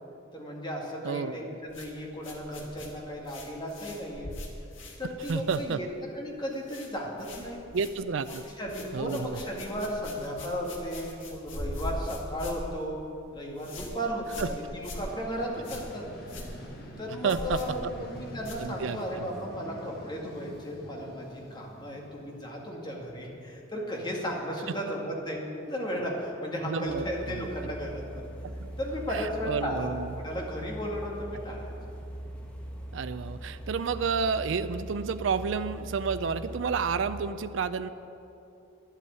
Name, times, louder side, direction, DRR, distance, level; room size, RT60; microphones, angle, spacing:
voice 1, 0.3-4.3 5.0-5.9 6.1-7.6 8.6-13.0 13.3-16.0 17.0-28.2 28.8-29.9 30.2-31.7, equal, 25° left, -1 dB, 2.2 m, -35 dB
voice 2, 1.0-1.4 5.3-5.8 7.7-8.4 8.9-9.4 14.4-14.5 17.2-17.6 18.6-19.2 26.6-27.4 28.4-28.7 29.1-30.1 32.9-37.9, right 5 dB, 70° right, 11 dB, 0.4 m, -30 dB
sound 1, 1.7-6.0 6.3-6.9 7.2-19.1, left 1 dB, 80° left, 2.1 m, -42 dB
Vehicle, 14.0-22.9, equal, 55° left, 2.1 m, -46 dB
sound 2, 26.8-37.3, right 1 dB, 5° left, 1.4 m, -41 dB
11.5 x 8.2 x 9.4 m, 2.8 s
head